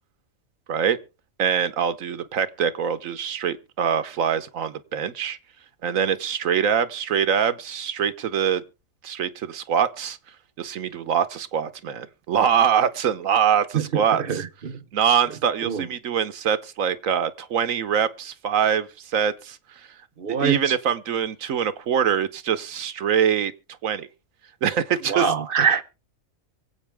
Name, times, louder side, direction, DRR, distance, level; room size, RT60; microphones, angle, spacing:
voice 1, 1.4-5.4 5.8-8.6 9.0-10.2 10.6-14.4 14.9-19.6 20.3-23.5 23.8-24.1 24.6-25.3, right 8 dB, 85° right, 1.4 m, -24 dB
voice 2, 13.7-14.8 15.6-15.9 20.2-20.6 25.1-25.8, right 6 dB, 50° right, 1.0 m, -24 dB
24.5 x 8.3 x 3.5 m
omnidirectional pair, 1.4 m